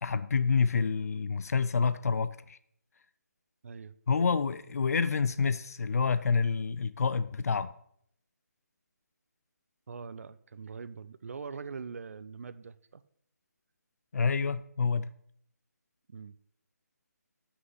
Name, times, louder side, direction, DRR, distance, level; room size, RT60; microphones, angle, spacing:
voice 1, 0.0-2.6 4.1-7.7 14.1-15.1, left 5 dB, 60° left, 0.5 m, -28 dB
voice 2, 3.6-3.9 9.9-13.0 16.1-16.3, right 5 dB, 55° right, 0.7 m, -43 dB
8.0 x 6.2 x 7.9 m
figure-of-eight pair, 155°, 9 cm